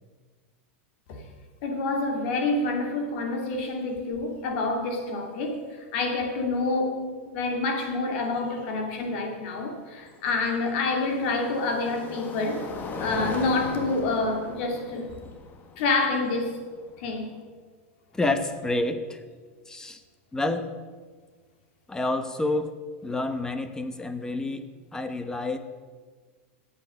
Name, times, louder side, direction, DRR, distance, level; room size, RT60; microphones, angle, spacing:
voice 1, 1.6-12.6 13.0-15.1 15.8-16.6 17.0-17.4, left 3 dB, 60° left, 3 dB, 2.7 m, -27 dB
sound 1, 3.5-3.6 4.0-4.4 6.2-6.3 9.3-17.4, left 3 dB, 30° left, 1.7 m, -39 dB
voice 2, 18.1-19.2 19.7-20.0 20.3-20.7 21.9-22.7 23.0-25.6, left 2 dB, 10° left, 9 dB, 1.1 m, -28 dB
14.5 x 8.6 x 6.4 m, 1.5 s
supercardioid pair, 130°, 7 cm